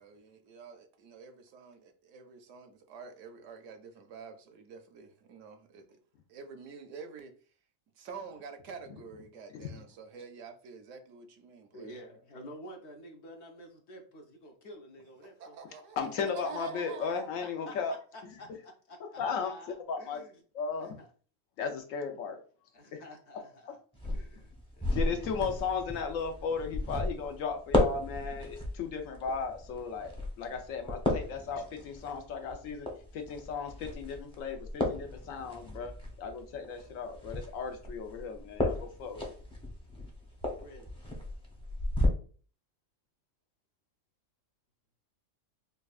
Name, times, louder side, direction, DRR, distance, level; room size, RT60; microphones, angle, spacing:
voice 1, 0.0-6.0 6.3-7.3 8.0-11.9 15.4-17.3, right 5 dB, 75° right, 1.0 m, -47 dB
voice 2, 11.7-15.6 17.4-20.4 20.8-21.1 22.7-23.8 24.0-25.4 40.4-40.9, left 1 dB, 65° left, 0.9 m, -50 dB
voice 3, 16.0-17.9 19.0-20.2 20.5-21.0 21.6-22.4 22.9-23.0 24.9-32.9 33.1-35.9 36.2-39.3, left 5 dB, 90° left, 1.1 m, -36 dB
sound 1, 23.9-42.1, left 1 dB, 5° left, 0.6 m, -35 dB
5.2 x 2.3 x 2.4 m
omnidirectional pair, 1.3 m